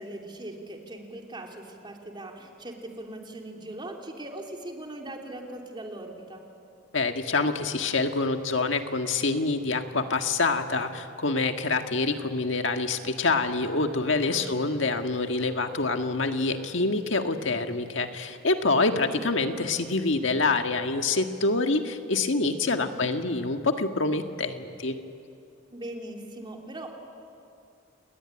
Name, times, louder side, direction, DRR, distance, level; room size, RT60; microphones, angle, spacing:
voice 1, 0.0-6.4 14.3-14.7 22.7-22.9 25.7-26.9, right 1 dB, 25° right, 1 dB, 3.3 m, -40 dB
voice 2, 6.9-25.0, left 3 dB, 70° left, 6 dB, 1.7 m, -26 dB
29.5 x 19.5 x 10.0 m, 2.5 s
head